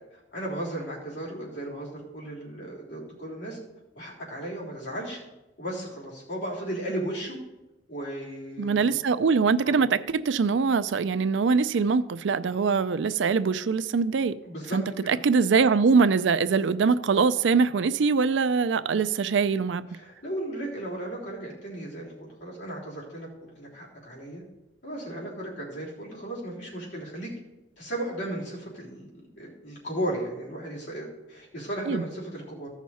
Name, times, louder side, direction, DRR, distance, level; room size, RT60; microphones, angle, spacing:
voice 1, 0.3-3.6 3.9-5.2 5.6-7.4 7.9-9.0 9.6-9.8 14.4-14.8 15.1-15.2 19.9-23.3 23.6-24.4 24.8-27.3 27.8-29.1 29.4-32.7, right 1 dB, 70° left, 3.4 m, -35 dB
voice 2, 8.6-14.3 14.7-19.8 31.9-32.0, right 5 dB, 75° right, 0.4 m, -23 dB
14.5 x 6.0 x 4.2 m
head